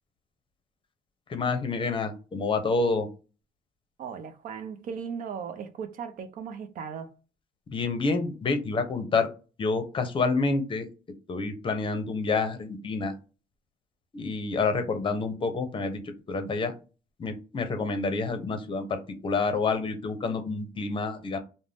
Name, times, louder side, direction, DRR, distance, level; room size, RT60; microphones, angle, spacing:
voice 1, 1.3-3.1 7.7-9.3 9.6-10.9 11.3-13.1 14.1-16.7 17.2-21.4, left 4 dB, 30° left, 0.7 m, -28 dB
voice 2, 4.0-7.1, right 6 dB, 55° right, 0.5 m, -37 dB
2.5 x 2.1 x 3.3 m
cardioid pair, 110°, 17 cm